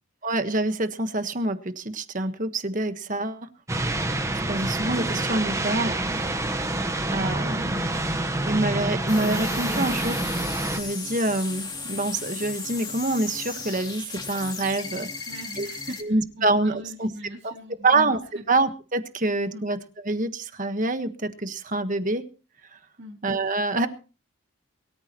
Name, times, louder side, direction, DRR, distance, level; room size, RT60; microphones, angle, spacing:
voice 1, 0.2-3.5 4.5-6.0 7.1-7.8 8.4-10.2 10.8-15.1 15.6-15.7 16.0-17.1 17.4-17.5 17.8-18.2 18.5-19.8 20.1-22.2 23.2-23.9, right 2 dB, 35° right, 9 dB, 1.4 m, -26 dB
sound 1, 3.7-10.8, right 2 dB, 15° right, 1.3 m, -27 dB
sound 2, 9.1-16.0, left 4 dB, 20° left, 2.8 m, -36 dB
voice 2, 15.3-18.0 18.3-18.5 19.1-19.2 19.5-19.7 23.0-23.2, equal, 50° right, -2 dB, 3.1 m, -42 dB
22.5 x 14.0 x 3.1 m, 0.35 s
head